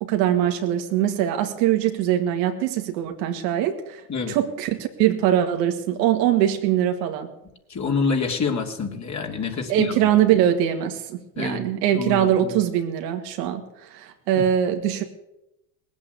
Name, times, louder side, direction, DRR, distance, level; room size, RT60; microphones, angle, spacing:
voice 1, 0.0-7.3 9.7-15.0, right 11 dB, 90° right, 5 dB, 2.0 m, -22 dB
voice 2, 7.7-9.9 11.4-11.6 11.9-12.6 14.4-14.5, left 5 dB, 35° left, 2 dB, 3.0 m, -27 dB
19.0 x 8.4 x 8.3 m, 0.89 s
supercardioid pair, 90°, 49 cm